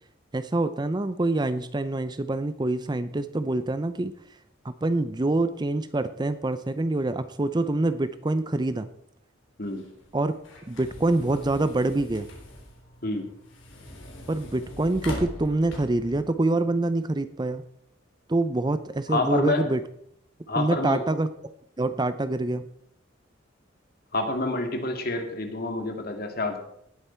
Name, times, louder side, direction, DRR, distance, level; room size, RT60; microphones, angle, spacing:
voice 1, 0.3-4.1 4.6-8.9 10.1-10.4 10.7-12.3 14.3-17.6 18.3-19.8 20.5-21.3 21.8-22.7, right 2 dB, 20° right, 12 dB, 0.5 m, -26 dB
sound 1, 9.6-16.2, left 1 dB, 70° left, 3.6 m, -41 dB
voice 2, 19.1-19.7 20.5-21.0 24.1-26.6, left 2 dB, 50° left, 5 dB, 2.0 m, -28 dB
18.0 x 8.1 x 4.4 m, 0.72 s
head